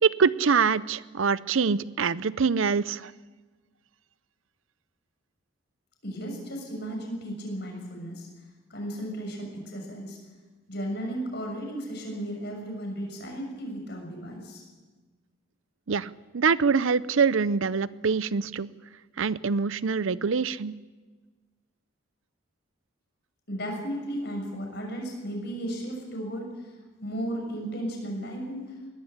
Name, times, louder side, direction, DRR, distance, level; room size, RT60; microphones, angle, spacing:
voice 1, 0.0-3.1 15.9-18.7 19.2-20.7, right 5 dB, 75° right, 18 dB, 0.6 m, -24 dB
voice 2, 6.0-8.3 8.7-10.2 10.7-14.6 23.5-26.7 27.0-28.7, equal, 50° left, 2 dB, 6.6 m, -35 dB
22.0 x 18.0 x 8.2 m, 1.3 s
head